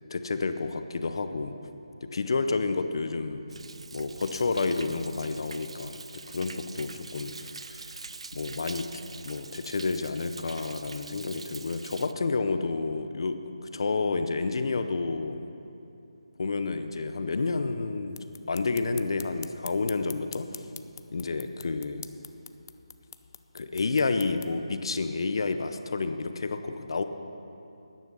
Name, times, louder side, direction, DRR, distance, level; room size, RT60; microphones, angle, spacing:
voice 1, 0.1-1.5 2.1-3.4 3.9-8.0 8.3-8.9 9.2-15.5 16.4-20.5 21.1-22.0 23.5-27.0, left 3 dB, 55° left, 9 dB, 0.8 m, -30 dB
Thunder, 3.5-12.1, right 4 dB, 70° right, 0.4 m, -44 dB
sound 1, 18.1-24.5, left 7 dB, 30° left, 0.4 m, -47 dB
13.5 x 9.8 x 5.4 m, 2.8 s
figure-of-eight pair, 170°, 3 cm